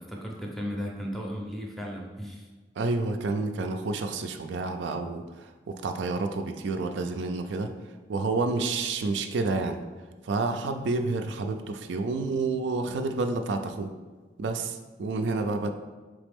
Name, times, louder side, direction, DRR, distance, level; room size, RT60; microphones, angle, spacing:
voice 1, 0.0-2.5, equal, ahead, -1 dB, 0.5 m, -35 dB
voice 2, 2.8-7.7 8.1-9.8 10.2-13.9 14.4-15.7, right 3 dB, 75° right, 6 dB, 0.4 m, -29 dB
4.0 x 3.3 x 3.5 m, 1.4 s
head